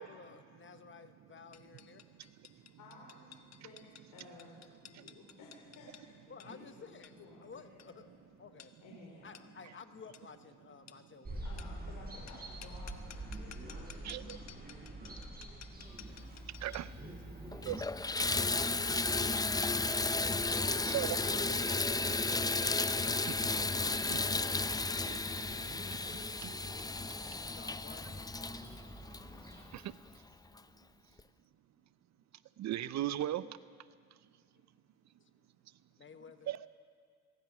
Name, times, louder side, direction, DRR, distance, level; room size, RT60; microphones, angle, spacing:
voice 1, 0.0-2.0 6.3-7.1 7.4-8.1 8.4-8.7 9.2-11.4 17.0-17.2 20.2-22.0 27.5-28.3 35.2-35.3 36.0-36.5, left 6 dB, 40° left, 9 dB, 1.1 m, -54 dB
sound 1, 1.5-17.0, left 9 dB, 60° left, 1.2 m, -57 dB
voice 2, 2.8-3.3 3.6-3.8 4.1-8.1 8.8-9.4 11.4-14.5 25.0-26.0, left 3 dB, 90° left, -2 dB, 3.7 m, -55 dB
sound 2, 11.2-29.7, right 1 dB, 30° right, 7.3 m, -47 dB
voice 3, 14.0-14.4 16.6-16.9 17.5-17.9 20.8-21.2 22.9-23.0 23.6-24.6 24.9-25.2 26.4-26.5 29.7-30.0 32.6-33.6 36.5-36.6, right 13 dB, 65° right, 16 dB, 0.6 m, -38 dB
Water tap faucet / Bathtub (filling or washing), 16.9-17.0 17.5-29.9 30.6-30.7 31.2-31.3, left 3 dB, 15° left, 0.5 m, -34 dB
22.5 x 21.5 x 6.1 m, 2.1 s
cardioid pair, 90°, 30 cm